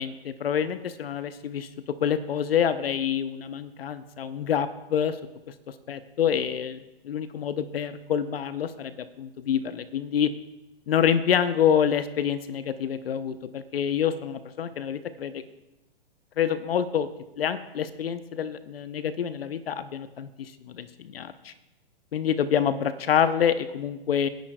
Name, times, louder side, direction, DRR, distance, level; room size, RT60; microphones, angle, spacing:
voice 1, 0.0-1.7 2.0-5.2 5.9-6.8 7.0-10.3 10.9-15.4 16.4-17.1 17.4-21.5 22.1-24.3, left 8 dB, 70° left, 12 dB, 0.7 m, -27 dB
27.5 x 10.5 x 2.2 m, 0.96 s
hypercardioid pair, 120°, 30 cm